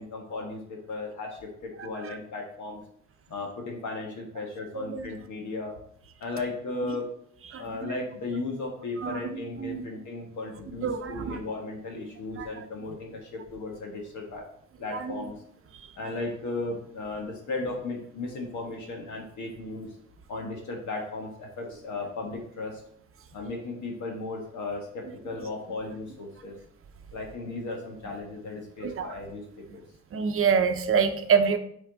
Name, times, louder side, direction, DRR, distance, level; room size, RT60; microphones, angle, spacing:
voice 1, 0.0-2.8 3.3-5.7 6.2-7.1 7.6-14.4 14.8-15.3 15.9-19.9 20.3-22.8 23.3-26.5 27.1-29.8, left 3 dB, 75° left, 1 dB, 1.5 m, -36 dB
voice 2, 1.8-2.2 4.7-5.1 6.8-6.9 7.5-7.9 9.0-9.9 10.8-11.4 12.4-12.5 14.9-15.3 15.7-15.9 28.8-29.1 30.1-31.6, right 6 dB, 45° right, 8 dB, 0.7 m, -27 dB
5.8 x 4.4 x 3.9 m, 0.67 s
cardioid pair, 90°, 30 cm